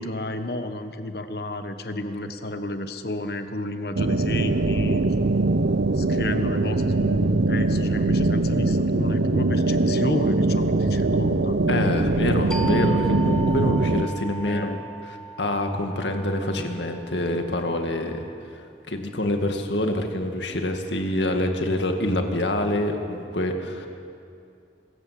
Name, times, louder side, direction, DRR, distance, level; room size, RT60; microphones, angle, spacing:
voice 1, 0.0-5.0 5.9-11.6 14.4-14.8, left 2 dB, 60° left, 8 dB, 1.3 m, -31 dB
sound 1, 3.9-14.1, right 2 dB, 70° right, 0.6 m, -22 dB
voice 2, 11.7-14.7 15.0-18.3 18.9-23.9, left 1 dB, 90° left, 4 dB, 2.1 m, -26 dB
sound 2, 12.5-17.8, right 3 dB, 5° left, 1.0 m, -37 dB
25.0 x 14.5 x 7.7 m, 2.5 s
head